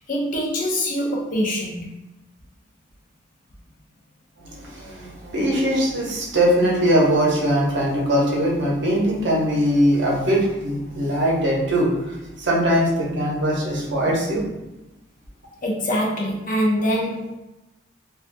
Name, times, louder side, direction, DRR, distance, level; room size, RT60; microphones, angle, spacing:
voice 1, 0.1-1.9 15.6-17.4, equal, 40° left, -2 dB, 0.5 m, -24 dB
voice 2, 4.4-14.7, equal, 60° right, -3 dB, 0.8 m, -21 dB
3.5 x 2.3 x 2.5 m, 0.96 s
head